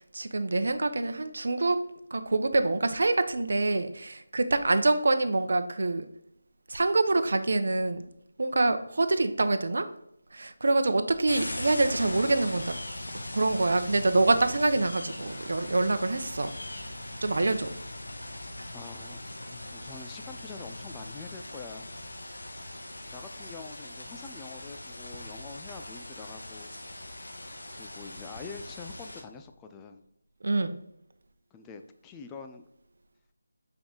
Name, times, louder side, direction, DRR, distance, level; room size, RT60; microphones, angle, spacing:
voice 1, 0.0-1.8 2.1-6.1 6.7-8.0 8.4-9.9 10.3-12.7 13.3-16.5 17.2-17.7 30.4-30.8, right 2 dB, 65° right, 9 dB, 0.7 m, -26 dB
sound 1, 11.3-29.2, left 1 dB, 80° left, 1.3 m, -40 dB
voice 2, 18.7-19.2 19.5-21.9 23.1-26.8 27.8-30.0 31.5-32.6, left 5 dB, 10° left, 6 dB, 0.4 m, -45 dB
7.0 x 4.9 x 3.8 m, 0.76 s
figure-of-eight pair, 165°, 0 cm